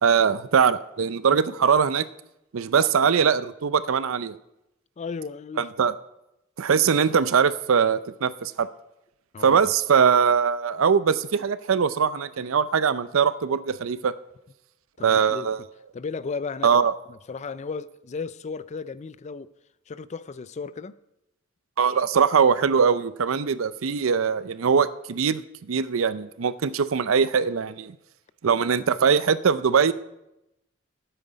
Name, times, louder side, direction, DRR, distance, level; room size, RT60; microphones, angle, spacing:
voice 1, 0.0-2.1 2.5-4.4 5.6-5.9 6.6-8.7 9.4-14.1 15.0-15.6 16.6-16.9 21.8-27.9 28.4-29.9, right 6 dB, 75° right, 15 dB, 0.5 m, -21 dB
voice 2, 5.0-5.7 9.3-9.6 15.0-15.5 15.9-19.5 19.9-21.0, left 4 dB, 35° left, 16 dB, 0.4 m, -35 dB
12.0 x 9.1 x 5.1 m, 0.88 s
head